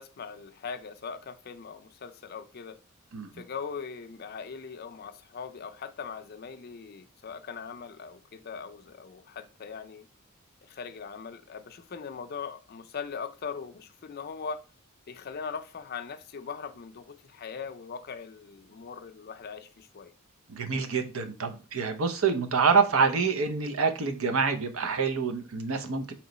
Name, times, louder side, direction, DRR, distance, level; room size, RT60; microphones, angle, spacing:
voice 1, 0.0-2.8 3.3-10.1 10.6-14.6 15.1-20.1, left 6 dB, 50° left, 0.4 m, -40 dB
voice 2, 20.5-26.1, right 5 dB, 80° right, 0.7 m, -26 dB
4.4 x 3.1 x 3.9 m
head